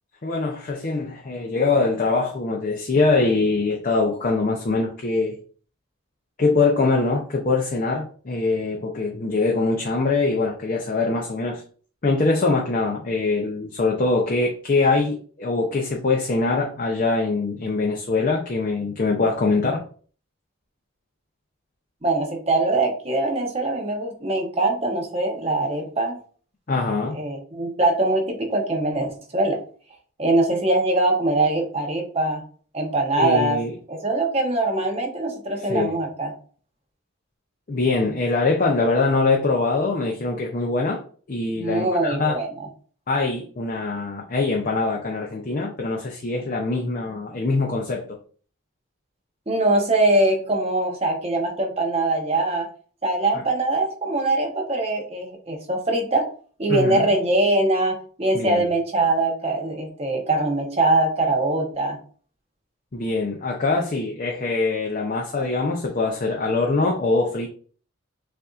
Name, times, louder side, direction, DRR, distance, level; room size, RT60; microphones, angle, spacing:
voice 1, 0.2-5.3 6.4-11.6 12.0-19.8 26.7-27.2 33.2-33.7 35.7-35.9 37.7-41.0 41.3-42.4 43.1-48.2 56.7-57.1 58.3-58.6 62.9-67.5, left 3 dB, 40° left, 0 dB, 0.5 m, -23 dB
voice 2, 22.0-26.2 27.1-29.6 30.2-32.4 32.7-33.6 33.9-36.3 41.6-42.5 49.5-52.7 53.0-56.3 56.6-62.0, right 2 dB, 30° right, 2 dB, 0.9 m, -22 dB
6.7 x 2.6 x 2.4 m, 0.43 s
head